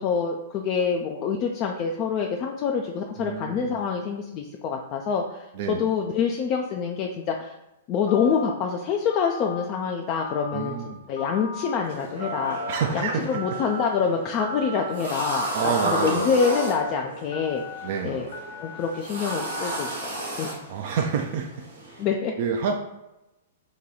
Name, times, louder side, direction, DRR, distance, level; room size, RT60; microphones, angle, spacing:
voice 1, 0.0-7.5 7.9-12.6 12.9-17.6 18.0-18.3 18.6-20.5 22.0-22.3, left 6 dB, 40° left, 2 dB, 0.3 m, -26 dB
voice 2, 3.2-3.8 5.6-5.8 10.5-11.0 12.7-13.3 15.5-16.3 17.8-18.2 20.7-21.5 22.4-22.7, right 6 dB, 50° right, 2 dB, 0.3 m, -28 dB
Telephone, 8.1-8.5 9.1-9.6 10.1-10.7 11.2-11.7 12.2-12.8 13.3-13.9 14.4-14.9 15.4-15.9 16.4-16.9 17.3-17.9 18.3-18.9 19.3-19.9, left 1 dB, 65° left, 1.0 m, -36 dB
sound 1, 11.8-22.0, right 1 dB, 75° right, 1.1 m, -34 dB
2.9 x 2.2 x 3.9 m, 0.97 s
figure-of-eight pair, 110°, 0 cm